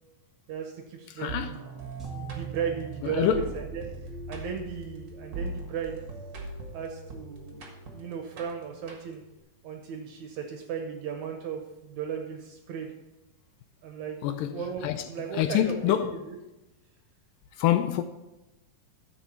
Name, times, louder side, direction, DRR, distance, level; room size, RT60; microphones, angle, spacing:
voice 1, 0.5-3.9 4.3-6.0 6.7-9.2 9.6-13.0 13.8-14.2 14.5-16.4, right 7 dB, 70° right, 1.9 m, -36 dB
voice 2, 1.1-1.5 3.0-3.5 14.2-15.0 15.3-16.1 17.5-18.0, left 11 dB, 80° left, 2.1 m, -26 dB
sound 1, 1.3-9.4, right 3 dB, 45° right, 1.6 m, -40 dB
sound 2, 2.0-6.3, right 4 dB, ahead, 1.6 m, -49 dB
13.0 x 7.5 x 4.3 m
omnidirectional pair, 4.2 m